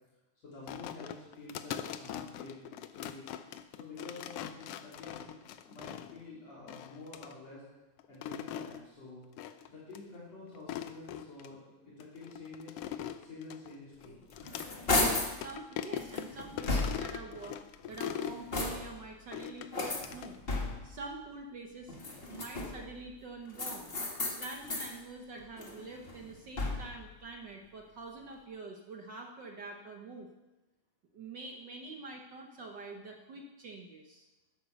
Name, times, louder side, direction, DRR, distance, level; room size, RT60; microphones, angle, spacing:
voice 1, 0.4-3.3 3.8-5.4 5.7-7.6 8.1-9.2 9.7-12.8 13.2-14.2, left 3 dB, 55° left, -8 dB, 4.7 m, -49 dB
sound 1, 0.7-6.2 6.7-7.3 8.0-8.8 9.4-9.7 9.9-10.0 10.5-11.5 12.0-14.7 15.0-15.1 15.4-18.4 19.3-20.4, left 10 dB, 80° left, 1.3 m, -41 dB
sound 2, 14.1-15.4 16.0-17.2 17.8-19.1 19.7-21.0 21.9-22.9 23.5-24.9 25.4-27.0, left 2 dB, 30° left, 1.2 m, -34 dB
voice 2, 15.3-17.6 17.9-20.4 20.8-22.0 22.3-23.9 24.4-30.3 31.1-34.3, right 3 dB, 70° right, 2 dB, 1.0 m, -46 dB
11.5 x 10.5 x 6.8 m, 1.1 s
omnidirectional pair, 3.4 m